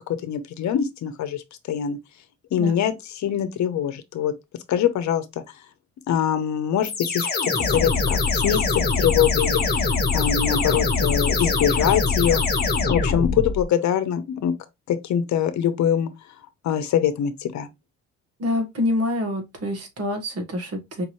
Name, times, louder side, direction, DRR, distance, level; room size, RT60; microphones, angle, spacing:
voice 1, 0.1-1.4 1.7-2.0 2.5-4.3 4.7-5.2 6.1-9.9 10.1-12.4 12.9-14.5 14.9-16.1 16.6-17.7, left 9 dB, 65° left, 0.9 m, -23 dB
sound 1, 6.8-13.6, left 4 dB, 30° left, 1.5 m, -23 dB
voice 2, 18.4-21.1, left 1 dB, 55° right, 1.6 m, -26 dB
5.2 x 2.7 x 3.1 m
cardioid pair, 90°, 30 cm